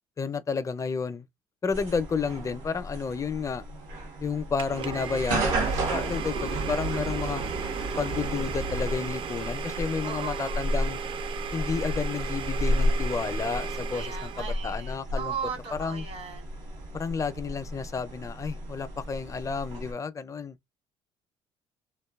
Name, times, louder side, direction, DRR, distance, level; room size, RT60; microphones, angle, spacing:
voice 1, 0.2-1.3 1.6-3.6 4.2-7.4 8.0-11.0 11.5-15.3 15.8-16.0 16.9-20.6, left 5 dB, 25° left, 0.4 m, -31 dB
sound 1, 1.7-19.9, right 1 dB, 85° right, 0.8 m, -32 dB
Domestic sounds home sounds, 4.6-14.6, right 7 dB, 45° right, 0.4 m, -37 dB
voice 2, 6.0-6.6 10.0-10.6 13.9-16.5, right 7 dB, 65° right, 1.1 m, -38 dB
2.6 x 2.2 x 2.3 m
supercardioid pair, 85°, 12 cm